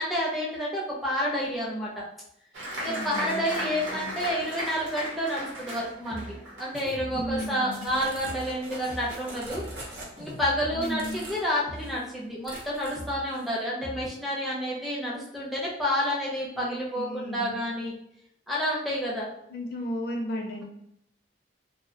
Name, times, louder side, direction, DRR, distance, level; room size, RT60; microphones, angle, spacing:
voice 1, 0.0-2.0 2.8-6.3 6.6-9.6 10.2-17.9 18.5-19.3, equal, ahead, -6 dB, 0.5 m, -29 dB
Applause, 2.5-9.6 9.9-10.6 11.0-11.1 11.4-11.9, equal, 90° right, 0.8 m, -37 dB
voice 2, 2.8-4.1 7.1-7.9 10.7-11.2 16.5-17.6 19.5-20.6, equal, 55° left, 2 dB, 0.4 m, -35 dB
sound 1, 5.5-5.8 6.1-6.5 6.7-7.9 8.2-8.6 8.9-9.9 10.2-11.4 11.7-12.1 12.5-13.3 13.8-14.1, equal, 30° right, 0.8 m, -41 dB
sound 2, 7.8-10.5 11.0-11.5 11.8-12.1 12.4-13.1 13.3-13.6, right 2 dB, 65° right, 0.6 m, -43 dB
2.3 x 2.0 x 2.7 m, 0.76 s
head